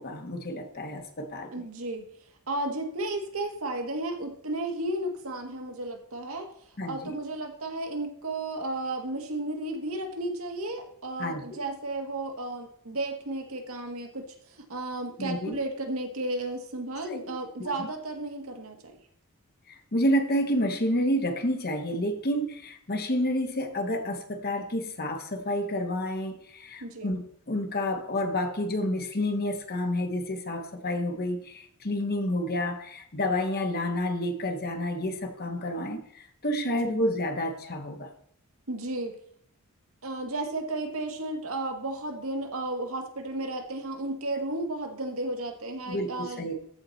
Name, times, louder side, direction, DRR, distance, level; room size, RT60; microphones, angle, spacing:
voice 1, 0.0-1.5 6.8-7.2 11.2-11.6 15.2-15.5 17.1-17.3 17.6-17.9 19.7-38.1 45.9-46.5, left 1 dB, 45° left, 5 dB, 1.4 m, -29 dB
voice 2, 1.5-19.0 26.8-27.1 36.6-37.0 38.7-39.2 40.0-46.5, right 2 dB, 70° right, 4 dB, 1.6 m, -33 dB
14.0 x 4.9 x 4.1 m, 0.66 s
head